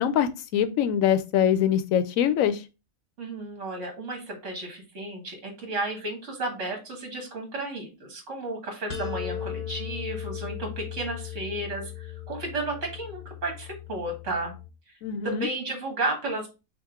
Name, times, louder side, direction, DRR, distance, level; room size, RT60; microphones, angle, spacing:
voice 1, 0.0-2.6 15.0-15.5, left 9 dB, 75° left, 11 dB, 1.0 m, -23 dB
voice 2, 3.2-14.5 15.2-16.5, right 2 dB, 60° right, 3 dB, 1.8 m, -33 dB
sound 1, 8.9-14.7, left 10 dB, 50° left, 0.9 m, -37 dB
5.9 x 2.5 x 3.6 m, 0.28 s
omnidirectional pair, 1.5 m